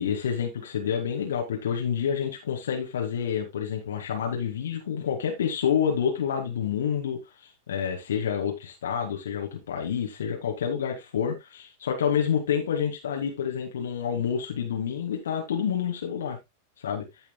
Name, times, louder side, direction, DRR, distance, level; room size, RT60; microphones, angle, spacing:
voice 1, 0.0-16.4 16.8-17.1, left 8 dB, 65° left, 2.0 m, -28 dB
15.5 x 5.7 x 2.3 m
figure-of-eight pair, 90°, 0 cm